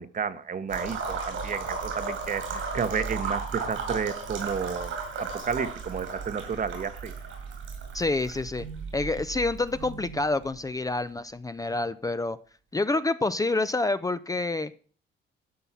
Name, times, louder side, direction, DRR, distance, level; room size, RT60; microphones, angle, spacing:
voice 1, 0.0-4.9 5.2-7.1, right 6 dB, 45° right, 1.1 m, -31 dB
sound 1, 0.7-10.5, right 4 dB, 85° right, 4.9 m, -35 dB
voice 2, 7.9-8.7 8.9-12.4 12.7-14.7, left 2 dB, 15° left, 0.6 m, -27 dB
12.5 x 5.5 x 7.3 m
cardioid pair, 90°, 20 cm